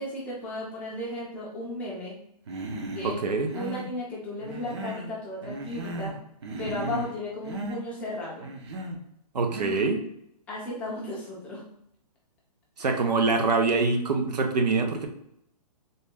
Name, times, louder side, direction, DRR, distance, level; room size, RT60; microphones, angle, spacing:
voice 1, 0.0-2.2 2.9-3.2 3.5-6.2 6.6-8.5 10.5-11.6 12.8-13.0, left 1 dB, 5° left, -5 dB, 0.4 m, -35 dB
Human voice, 2.5-3.1 3.4-3.9 4.4-5.1 5.4-6.2 6.4-7.1 7.4-7.8 8.4-9.0 9.5-9.9, right 2 dB, 40° right, 0.6 m, -36 dB
voice 2, 3.0-3.5 9.3-10.0 12.8-15.1, right 3 dB, 80° right, 5 dB, 0.8 m, -24 dB
3.9 x 2.2 x 3.5 m, 0.75 s
hypercardioid pair, 160°, 21 cm